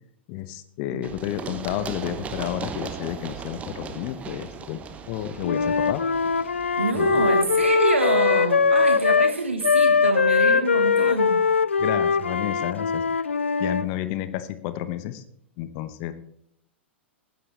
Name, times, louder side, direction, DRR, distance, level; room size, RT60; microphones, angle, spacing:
voice 1, 0.3-4.8 5.1-6.0 6.9-7.2 11.8-13.2 13.6-15.2 15.6-16.1, left 13 dB, 40° left, 13 dB, 1.0 m, -31 dB
Run, 1.0-8.7, right 6 dB, 20° right, 1.1 m, -38 dB
Wind instrument woodwind instrument, 5.4-9.3 9.6-13.9, left 5 dB, 75° left, 0.3 m, -21 dB
voice 2, 6.8-11.4, right 3 dB, 80° right, 6 dB, 1.3 m, -26 dB
19.5 x 10.5 x 3.3 m, 0.74 s
figure-of-eight pair, 95°, 6 cm